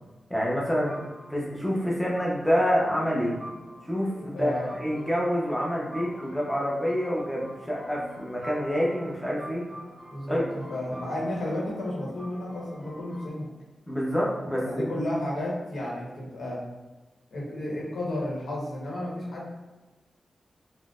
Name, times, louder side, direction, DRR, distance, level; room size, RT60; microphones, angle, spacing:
voice 1, 0.3-0.9 1.3-3.3 3.8-9.6 10.3-10.4 13.9-14.8, equal, ahead, -5 dB, 0.7 m, -27 dB
sound 1, 0.7-13.3, equal, 20° right, 1.3 m, -45 dB
voice 2, 4.2-4.8 10.1-10.4 10.7-13.5 14.6-16.6 17.3-19.5, left 1 dB, 80° left, -5 dB, 1.0 m, -32 dB
3.7 x 2.1 x 2.4 m, 1.1 s
cardioid pair, 80°, 0 cm